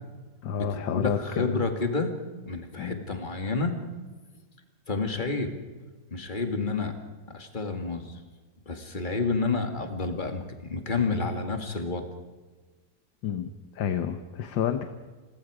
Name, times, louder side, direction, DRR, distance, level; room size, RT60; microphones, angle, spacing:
voice 1, 0.4-1.6 2.8-3.0 13.2-14.9, left 8 dB, 85° left, 8 dB, 1.8 m, -30 dB
voice 2, 0.9-2.1 2.5-3.7 4.9-5.5 6.1-6.9 7.3-8.2 8.7-12.1, left 3 dB, 25° left, 5 dB, 2.2 m, -29 dB
29.0 x 22.0 x 5.0 m, 1.3 s
omnidirectional pair, 2.0 m